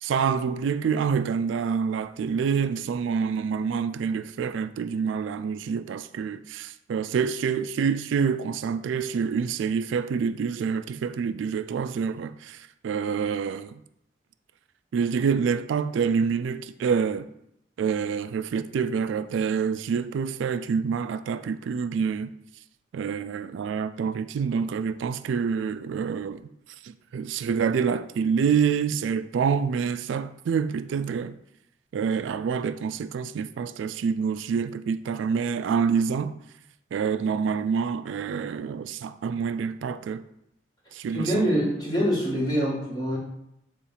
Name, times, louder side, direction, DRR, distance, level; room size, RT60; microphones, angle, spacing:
voice 1, 0.0-13.8 14.9-17.3 17.8-22.3 22.9-26.5 26.8-31.4 31.9-36.4 36.9-40.2 40.9-41.5, right 6 dB, 80° right, 0.3 m, -27 dB
voice 2, 41.1-43.2, equal, 20° left, 1.7 m, -25 dB
6.9 x 2.5 x 5.6 m
head